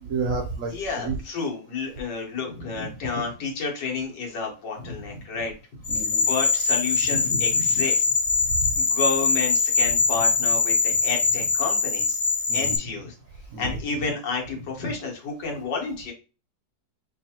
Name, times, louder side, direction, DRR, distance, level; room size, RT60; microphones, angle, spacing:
voice 1, 0.0-1.2 5.9-6.2 12.5-12.8 13.5-13.7, right 4 dB, 65° right, 3 dB, 0.8 m, -30 dB
voice 2, 0.6-5.5 6.3-8.1 8.7-12.2 12.5-13.1 13.6-16.1, left 4 dB, 75° left, 0 dB, 1.8 m, -30 dB
sound 1, 5.8-12.8, left 4 dB, 60° left, 1.0 m, -22 dB
5.0 x 2.4 x 2.8 m, 0.32 s
omnidirectional pair, 1.9 m